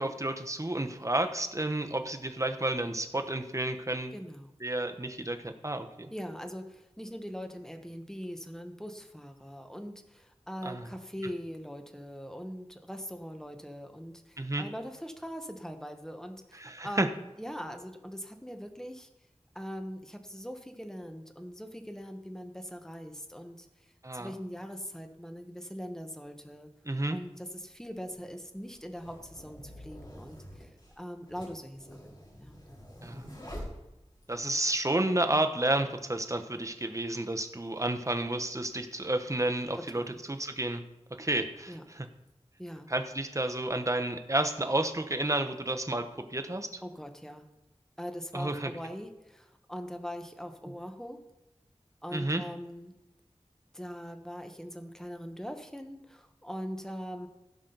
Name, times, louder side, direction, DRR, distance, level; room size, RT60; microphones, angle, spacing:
voice 1, 0.0-4.1 4.6-6.1 10.6-10.9 14.4-14.7 16.6-17.1 24.0-24.3 26.8-27.2 33.0-33.2 34.3-40.0 40.3-40.8 41.2-42.1 42.9-46.8 48.3-48.7 52.1-52.4, right 1 dB, 25° right, 6 dB, 1.0 m, -31 dB
voice 2, 4.1-4.5 6.1-19.1 19.5-23.7 24.1-26.7 27.1-30.7 31.0-32.1 32.4-32.6 39.9-40.1 41.7-41.8 42.6-42.9 46.8-47.5 48.0-51.2 52.0-52.9 53.7-57.3, equal, 5° left, 6 dB, 1.3 m, -41 dB
sound 1, 28.0-34.4, equal, 40° left, 4.3 m, -46 dB
16.0 x 6.2 x 4.0 m, 0.96 s
wide cardioid pair, 45°, 11 cm